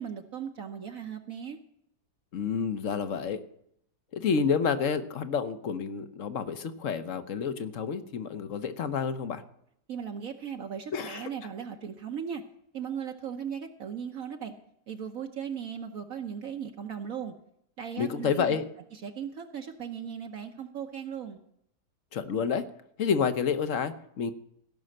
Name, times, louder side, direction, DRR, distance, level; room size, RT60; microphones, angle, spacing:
voice 1, 0.0-1.6 9.9-12.4 12.7-14.5 14.9-17.3 17.8-18.6 18.9-21.4, right 7 dB, 60° right, 4 dB, 1.3 m, -37 dB
voice 2, 2.3-3.4 4.1-9.4 10.9-11.3 18.0-18.6 22.1-22.6 23.0-24.3, left 6 dB, 55° left, 11 dB, 1.2 m, -29 dB
16.0 x 6.3 x 7.7 m, 0.73 s
omnidirectional pair, 1.8 m